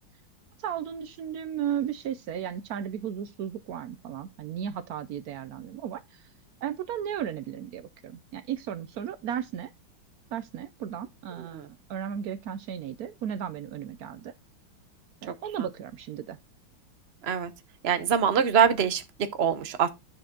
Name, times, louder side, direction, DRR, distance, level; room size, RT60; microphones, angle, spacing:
voice 1, 0.6-6.2 6.6-9.7 10.3-11.6 11.9-14.3 15.2-16.4, right 9 dB, 90° right, 0.8 m, -35 dB
voice 2, 17.8-19.9, right 7 dB, 50° right, 0.7 m, -24 dB
10.0 x 6.0 x 3.8 m
omnidirectional pair, 2.3 m